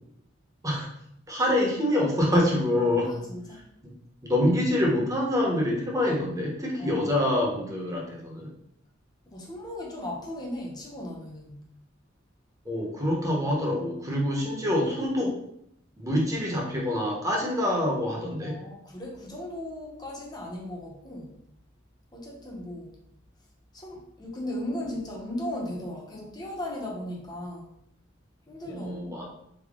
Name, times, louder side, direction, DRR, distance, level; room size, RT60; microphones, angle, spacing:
voice 1, 1.3-3.1 3.8-3.9 4.2-8.5 12.6-15.4 16.0-18.6 28.6-29.2, left 1 dB, 15° right, -2 dB, 0.8 m, -26 dB
voice 2, 3.1-3.6 6.8-7.1 9.3-11.6 18.4-21.3 22.1-23.0 23.7-27.7 28.5-29.1, left 1 dB, 20° left, -2 dB, 0.7 m, -37 dB
3.5 x 2.1 x 3.5 m, 0.73 s
head